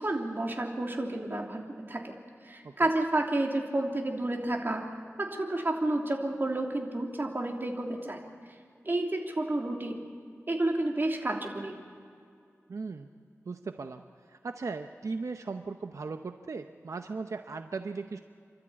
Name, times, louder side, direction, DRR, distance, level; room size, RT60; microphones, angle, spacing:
voice 1, 0.0-2.2 2.4-4.8 5.2-8.2 8.8-10.0 10.5-11.7, right 2 dB, 45° right, 0 dB, 3.1 m, -30 dB
voice 2, 12.7-13.1 13.5-14.0 14.3-18.2, right 4 dB, 90° right, 7 dB, 0.7 m, -37 dB
29.5 x 12.5 x 8.6 m, 2.3 s
wide cardioid pair, 75°, 5 cm